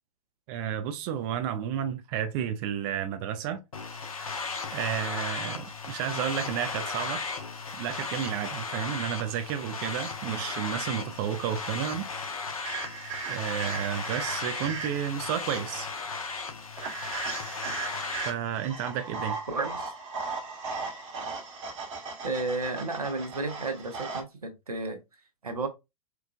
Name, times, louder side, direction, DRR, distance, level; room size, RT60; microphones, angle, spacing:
voice 1, 0.5-3.6 4.2-4.3 4.7-7.2 7.8-12.1 13.3-15.9 18.2-19.4, right 9 dB, 40° right, 0.4 m, -31 dB
sound 1, 3.7-18.3, left 4 dB, 75° left, 0.9 m, -36 dB
sound 2, 12.7-15.2 16.8-24.2, right 4 dB, 60° right, 1.4 m, -37 dB
voice 2, 19.5-19.9 22.2-25.0 25.4-25.7, right 3 dB, 85° right, 0.9 m, -32 dB
4.5 x 2.4 x 2.3 m
figure-of-eight pair, 100°, 19 cm